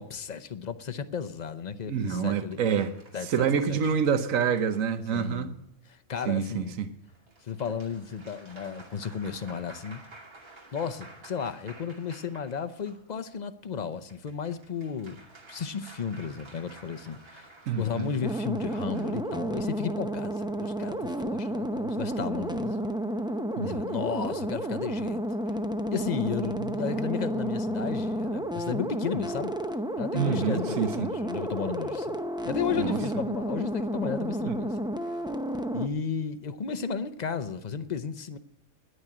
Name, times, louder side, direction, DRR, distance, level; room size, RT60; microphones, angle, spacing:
voice 1, 0.0-2.8 3.1-3.8 5.1-6.7 7.4-10.0 10.7-15.2 15.5-22.8 23.6-25.6 25.9-29.5 30.0-32.2 32.4-34.8 35.7-38.4, left 6 dB, 40° left, 0.7 m, -34 dB
voice 2, 1.9-2.9 3.3-5.5 6.3-6.9 17.7-18.1 23.6-23.8 30.1-31.1 32.8-33.0 34.5-34.6, right 7 dB, 70° right, 1.4 m, -27 dB
sound 1, 2.8-5.3 7.1-13.1 13.9-19.3, right 2 dB, 90° right, 3.0 m, -52 dB
sound 2, 18.2-35.9, right 1 dB, 5° right, 0.3 m, -31 dB
10.5 x 9.6 x 8.7 m
omnidirectional pair, 1.4 m